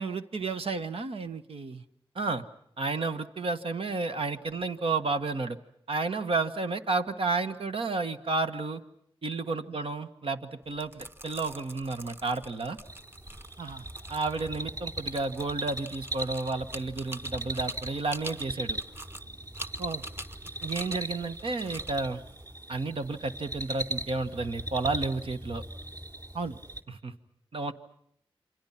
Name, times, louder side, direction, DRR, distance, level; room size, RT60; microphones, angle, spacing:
voice 1, 0.0-1.8 9.7-9.8 13.6-13.9 19.8-20.1 20.9-21.0 26.3-26.6, right 4 dB, 90° right, 8 dB, 1.2 m, -35 dB
voice 2, 2.8-5.6 5.9-8.8 9.2-10.9 11.2-12.8 14.1-18.8 20.6-22.2 22.7-25.6 27.0-27.1 27.5-27.7, right 3 dB, 70° right, 7 dB, 1.5 m, -31 dB
sound 1, 10.6-23.4, right 1 dB, 25° right, 1.4 m, -46 dB
sound 2, 12.9-26.8, right 1 dB, 40° right, 2.6 m, -39 dB
28.5 x 26.0 x 5.9 m, 0.70 s
cardioid pair, 50°, 10 cm